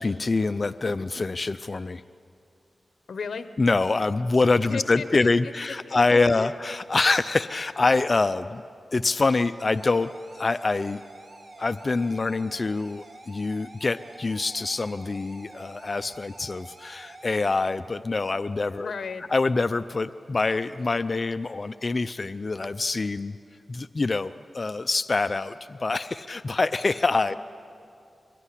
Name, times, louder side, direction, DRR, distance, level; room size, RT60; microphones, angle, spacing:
voice 1, 0.0-2.0 3.6-8.6 8.9-11.0 11.6-18.9 19.3-23.4 23.7-27.4, left 3 dB, 45° left, 12 dB, 0.5 m, -25 dB
voice 2, 3.1-3.5 4.7-5.3 5.9-6.5 18.7-19.3, left 5 dB, 80° left, 11 dB, 0.9 m, -35 dB
sound 1, 9.6-17.6, right 2 dB, 50° right, 2.5 m, -48 dB
24.0 x 20.0 x 10.0 m, 2.5 s
wide cardioid pair, 70°, 0 cm